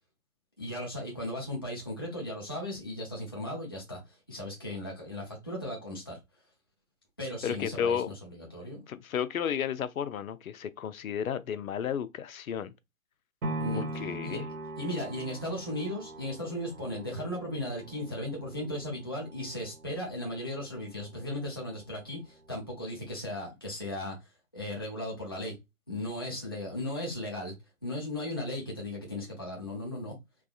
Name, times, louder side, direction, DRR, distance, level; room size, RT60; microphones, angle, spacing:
voice 1, 0.6-6.2 7.2-8.8 13.6-13.8 14.2-14.4 14.8-25.6 25.9-27.5 27.8-30.1, left 1 dB, 20° left, 0.4 m, -36 dB
voice 2, 7.4-8.1 8.9-12.7 13.8-14.5, left 8 dB, 70° left, 0.6 m, -33 dB
sound 1, 13.4-21.5 22.0-22.1, right 2 dB, 65° right, 1.3 m, -42 dB
3.5 x 3.1 x 2.3 m
hypercardioid pair, 145°, 44 cm